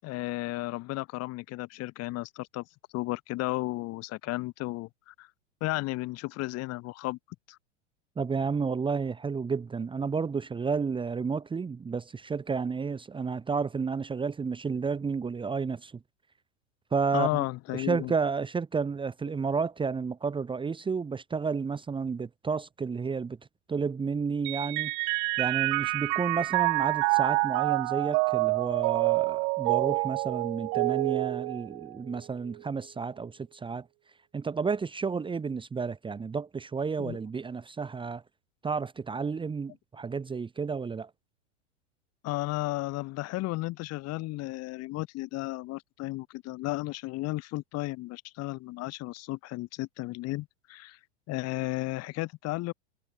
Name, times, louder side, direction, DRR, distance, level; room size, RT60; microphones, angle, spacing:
voice 1, 0.0-2.6 2.9-5.3 5.6-7.2 7.5-7.6 17.1-18.1 37.0-37.2 42.2-51.0 51.3-52.7, left 19 dB, 45° left, 6.4 m, -34 dB
voice 2, 8.2-16.0 16.9-17.4 17.7-23.4 23.7-24.9 25.4-33.9 34.3-38.2 38.6-41.1, right 5 dB, 15° right, 1.7 m, -31 dB
Mallet percussion, 24.4-32.2, right 40 dB or more, 45° right, 1.4 m, -27 dB
hypercardioid pair, 110°, 36 cm